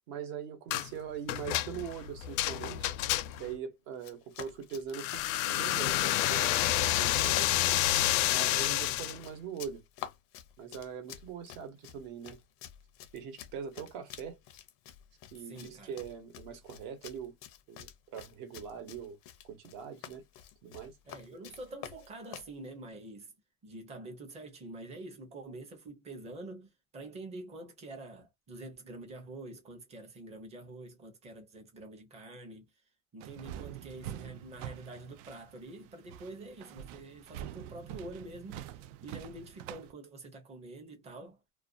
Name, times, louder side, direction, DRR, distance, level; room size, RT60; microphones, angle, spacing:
voice 1, 0.0-2.9 3.4-7.5 8.3-9.8 10.6-12.4 13.1-14.4 15.3-17.4 17.7-19.2 19.5-20.3 20.6-21.0, right 7 dB, 55° right, 1.1 m, -42 dB
sound 1, 0.7-0.9 1.3-3.5 4.9-9.2, left 14 dB, 90° left, 0.5 m, -29 dB
Run, 3.9-22.5, left 11 dB, 40° left, 0.4 m, -49 dB
voice 2, 8.2-8.6 15.5-15.9 21.1-23.3 23.6-32.6 33.1-41.4, right 2 dB, 15° right, 0.6 m, -46 dB
sound 2, 33.2-39.9, right 12 dB, 75° right, 0.5 m, -45 dB
2.4 x 2.2 x 2.4 m
cardioid pair, 165°, 38 cm